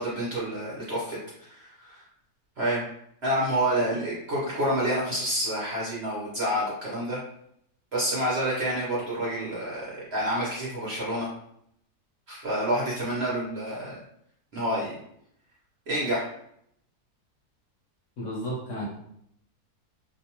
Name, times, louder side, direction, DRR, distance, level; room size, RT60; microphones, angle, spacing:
voice 1, 0.0-2.0 2.6-2.8 3.2-7.2 7.9-11.3 12.3-14.0 14.5-15.0 15.9-16.3, right 1 dB, 50° right, -6 dB, 0.8 m, -28 dB
voice 2, 18.2-18.8, equal, 60° left, -4 dB, 0.9 m, -32 dB
2.6 x 2.2 x 2.8 m, 0.72 s
omnidirectional pair, 1.7 m